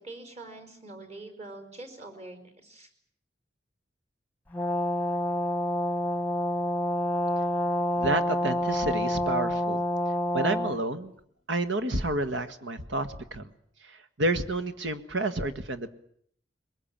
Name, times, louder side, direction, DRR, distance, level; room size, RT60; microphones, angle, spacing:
voice 1, 0.0-2.9, right 2 dB, 35° right, 7 dB, 4.6 m, -44 dB
Brass instrument, 4.5-10.8, equal, 10° left, 1.0 m, -28 dB
voice 2, 8.0-9.8 10.3-11.1 11.5-13.5 13.8-15.9, right 2 dB, 80° right, 10 dB, 1.7 m, -30 dB
21.5 x 21.0 x 8.9 m, 0.65 s
head